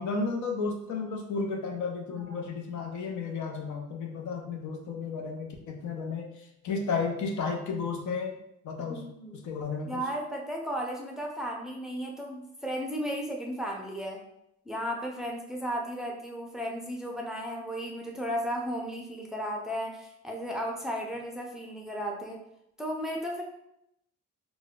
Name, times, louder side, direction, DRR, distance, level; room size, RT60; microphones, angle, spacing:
voice 1, 0.0-8.4 8.6-9.1 9.4-10.0, left 4 dB, 75° left, 3 dB, 0.6 m, -33 dB
voice 2, 2.1-2.5 8.9-9.4 9.9-14.2 14.7-22.4 22.8-23.4, equal, ahead, 0 dB, 0.5 m, -35 dB
4.0 x 2.2 x 2.3 m, 0.81 s
cardioid pair, 90°, 30 cm